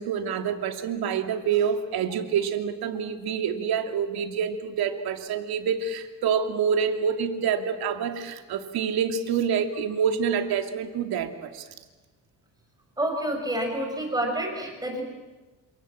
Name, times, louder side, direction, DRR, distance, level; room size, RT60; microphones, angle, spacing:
voice 1, 0.0-11.7, right 7 dB, 80° right, 5 dB, 2.9 m, -27 dB
voice 2, 13.0-15.0, right 1 dB, 10° right, 2 dB, 6.0 m, -28 dB
28.5 x 27.5 x 7.6 m, 1.2 s
cardioid pair, 145°, 36 cm